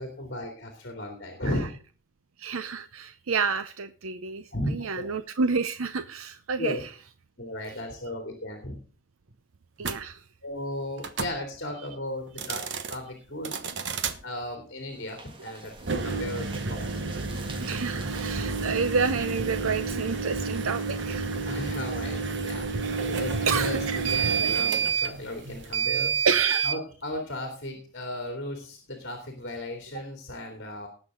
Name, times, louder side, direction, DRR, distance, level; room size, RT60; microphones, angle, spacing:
voice 1, 0.0-1.7 4.5-4.9 6.6-6.8 7.4-8.8 10.4-12.6 12.9-13.5 14.2-16.9 21.4-22.7 23.1-26.1 26.6-30.9, left 1 dB, 55° left, 4 dB, 2.9 m, -35 dB
voice 2, 2.4-6.8 9.8-10.2 17.3-21.4 23.5-24.1 24.4-24.5 26.2-26.7, right 5 dB, 85° right, 11 dB, 0.7 m, -29 dB
sound 1, 9.8-10.0 11.0-11.4 12.3-13.0 13.4-14.2 15.8-26.8, right 5 dB, 60° right, 1.2 m, -29 dB
sound 2, 14.8-23.2, right 2 dB, 25° right, 1.5 m, -48 dB
19.0 x 6.8 x 3.8 m, 0.38 s
head